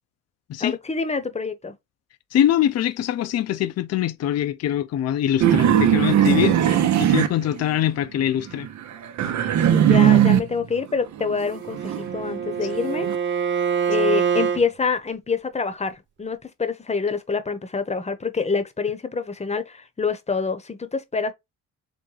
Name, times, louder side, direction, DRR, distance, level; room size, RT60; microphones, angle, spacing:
voice 1, 0.6-1.7 9.7-13.1 13.9-21.3, left 5 dB, 20° left, 0.9 m, -26 dB
voice 2, 2.3-8.7, left 11 dB, 55° left, 0.5 m, -23 dB
sound 1, 5.4-8.0 8.4-10.7 11.1-13.2, right 10 dB, 70° right, 0.8 m, -19 dB
Bowed string instrument, 11.5-14.6, right 7 dB, 40° right, 0.7 m, -25 dB
3.9 x 3.4 x 3.3 m
cardioid pair, 90°, 30 cm